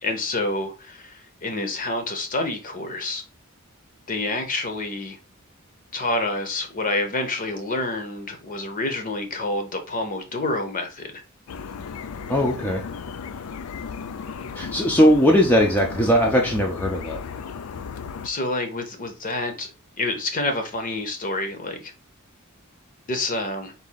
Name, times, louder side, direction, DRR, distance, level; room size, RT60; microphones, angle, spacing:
voice 1, 0.0-3.2 4.1-5.2 5.9-11.2 18.2-19.7 20.0-21.9 23.1-23.7, left 2 dB, 40° left, 0.8 m, -28 dB
sound 1, 11.5-18.3, left 6 dB, 70° left, 0.4 m, -35 dB
voice 2, 12.3-12.8 14.6-17.2, equal, 10° left, 0.6 m, -19 dB
4.1 x 2.7 x 3.8 m
head